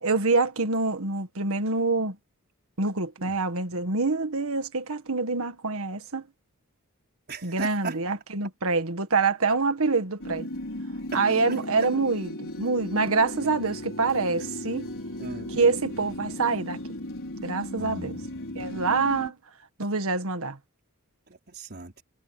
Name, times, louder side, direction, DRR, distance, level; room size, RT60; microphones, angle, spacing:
voice 1, 0.0-2.2 2.8-6.2 7.4-10.5 11.1-14.9 15.5-16.8 17.4-18.2 18.6-19.4 19.8-20.6, right 3 dB, 65° right, 1.8 m, -26 dB
voice 2, 7.3-8.0 11.1-11.2 15.2-15.6 17.8-18.4 21.3-22.0, right 3 dB, 45° right, 4.9 m, -38 dB
sound 1, 10.2-19.3, left 1 dB, 60° left, 5.4 m, -36 dB
head